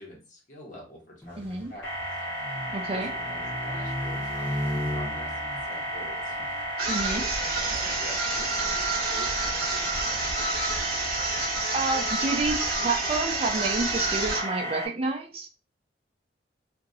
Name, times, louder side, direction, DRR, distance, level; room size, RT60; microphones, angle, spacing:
voice 1, 0.0-1.9 2.9-6.4 7.1-10.4, equal, 45° left, -2 dB, 1.2 m, -46 dB
sound 1, 1.2-6.7, left 1 dB, 10° left, 0.8 m, -36 dB
voice 2, 1.4-1.7 2.7-3.1 6.9-7.3 11.7-15.5, right 3 dB, 35° right, 3 dB, 0.5 m, -29 dB
sound 2, 1.8-14.9, right 1 dB, 85° left, 1.2 m, -33 dB
sound 3, 6.8-14.5, right 3 dB, 55° right, 0.9 m, -29 dB
2.8 x 2.6 x 2.6 m, 0.32 s
head